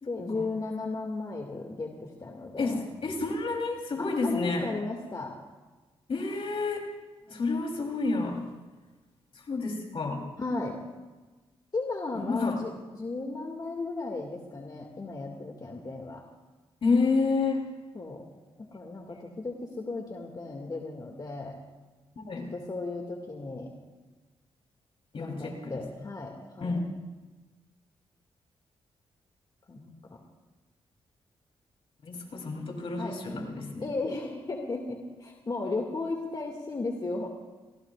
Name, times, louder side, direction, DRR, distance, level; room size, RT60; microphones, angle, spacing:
voice 1, 0.0-2.8 4.0-5.3 10.4-10.8 11.7-16.2 17.9-18.2 18.7-21.6 22.5-23.7 25.1-26.8 29.7-30.2 33.0-33.2 33.8-37.3, left 3 dB, 40° left, 1 dB, 2.2 m, -35 dB
voice 2, 2.6-4.7 6.1-6.9 7.3-8.4 9.5-10.2 12.2-12.6 16.8-17.6 22.2-22.5 25.1-25.8 26.6-26.8 32.0-33.9, left 3 dB, 60° left, 2 dB, 3.5 m, -29 dB
28.5 x 18.5 x 2.5 m, 1.2 s
cardioid pair, 70°, 11 cm